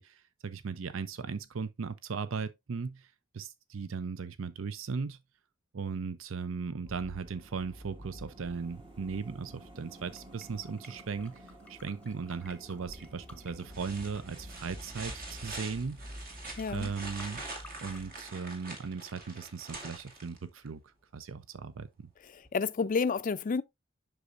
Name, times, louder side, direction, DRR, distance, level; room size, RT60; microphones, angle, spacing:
voice 1, 0.0-5.2 5.7-11.4 11.7-16.0 16.7-17.4 17.8-20.8 21.1-22.1, right 5 dB, 65° right, 0.6 m, -37 dB
sound 1, 6.8-19.3 19.5-19.6, equal, 25° right, 1.1 m, -49 dB
sound 2, 8.4-18.1, left 1 dB, 5° left, 1.0 m, -58 dB
sound 3, 12.9-13.2 13.7-20.7 22.4-22.5, right 2 dB, 45° right, 2.1 m, -45 dB
voice 2, 16.6-16.9 22.3-23.6, left 5 dB, 40° left, 0.4 m, -30 dB
8.2 x 6.2 x 2.5 m
head